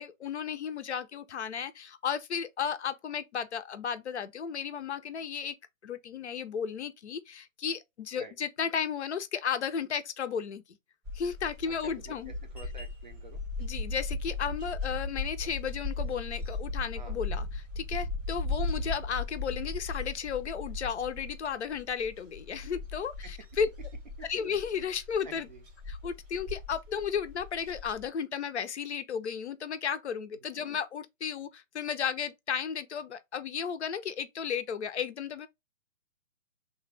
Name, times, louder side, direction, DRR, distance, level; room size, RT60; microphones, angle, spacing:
voice 1, 0.0-5.6 5.8-10.6 11.1-12.3 13.6-23.7 24.3-25.5 25.9-35.5, left 7 dB, 60° left, 0.5 m, -34 dB
sound 1, 11.0-28.1, left 3 dB, 10° right, 0.7 m, -37 dB
voice 2, 11.7-13.4 17.0-17.2 23.2-23.3 24.2-24.3 25.2-25.6, right 4 dB, 35° right, 0.4 m, -49 dB
3.3 x 2.2 x 3.1 m
figure-of-eight pair, 135°, 40 cm